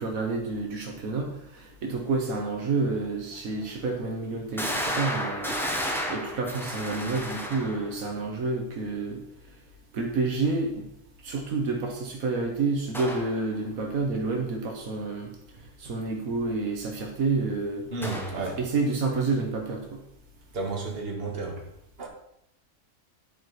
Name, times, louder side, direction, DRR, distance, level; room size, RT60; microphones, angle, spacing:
voice 1, 0.0-5.5 6.1-9.2 9.9-10.8 11.2-15.3 15.8-17.9 18.3-20.0, right 3 dB, 85° right, 2 dB, 1.7 m, -29 dB
sound 1, 3.0-3.1 3.7-3.8 4.6-8.0 12.9-13.4 18.0-18.5, equal, ahead, 1.1 m, -32 dB
voice 2, 17.9-18.6 20.5-21.6 22.0-22.1, right 3 dB, 45° right, 1 dB, 1.7 m, -32 dB
10.5 x 4.7 x 4.7 m, 0.80 s
omnidirectional pair, 1.4 m